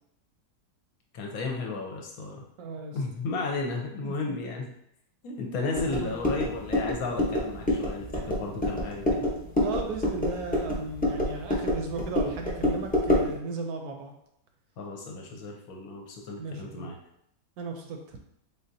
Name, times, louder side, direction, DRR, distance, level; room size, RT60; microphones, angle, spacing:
voice 1, 1.1-2.4 2.9-4.7 5.2-9.3 14.8-17.0, left 3 dB, 70° left, 0 dB, 1.0 m, -34 dB
voice 2, 2.6-3.0 4.0-4.2 5.8-6.1 8.2-8.7 9.6-14.1 16.4-16.9 17.6-18.2, right 3 dB, 70° right, 3 dB, 1.0 m, -36 dB
sound 1, 5.7-13.3, left 1 dB, 10° left, 0.4 m, -28 dB
3.9 x 3.4 x 2.6 m, 0.75 s
omnidirectional pair, 1.8 m